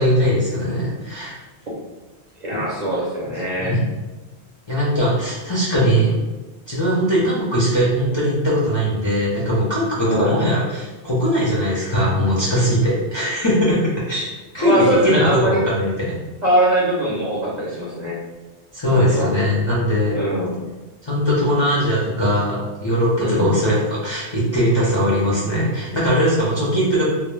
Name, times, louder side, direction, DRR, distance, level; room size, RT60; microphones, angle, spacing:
voice 1, 0.0-1.3 3.6-3.8 4.7-6.1 6.7-14.2 14.5-16.2 18.7-20.2 21.0-27.1, equal, 35° left, -9 dB, 0.5 m, -20 dB
voice 2, 2.4-3.7 10.0-10.3 14.6-15.6 16.4-18.2 18.9-19.3 20.1-20.5 23.2-23.5, right 1 dB, 50° right, -6 dB, 0.6 m, -21 dB
2.2 x 2.1 x 3.1 m, 1.2 s
omnidirectional pair, 1.1 m